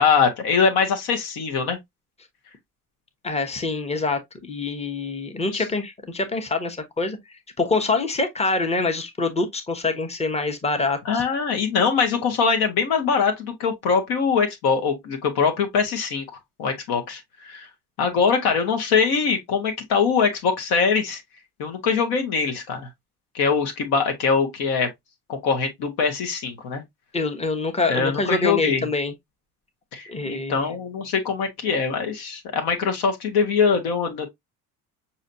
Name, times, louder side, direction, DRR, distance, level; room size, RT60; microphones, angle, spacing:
voice 1, 0.0-1.8 5.5-5.6 11.0-16.2 16.6-17.7 18.0-21.2 21.6-22.9 23.3-24.9 25.3-26.8 27.9-28.8 29.9-34.3, left 5 dB, 55° left, 1.2 m, -22 dB
voice 2, 3.2-7.2 7.6-11.2 27.1-29.1 30.1-30.6, left 3 dB, 15° left, 1.1 m, -25 dB
6.2 x 2.9 x 2.6 m
figure-of-eight pair, 55°, 45 cm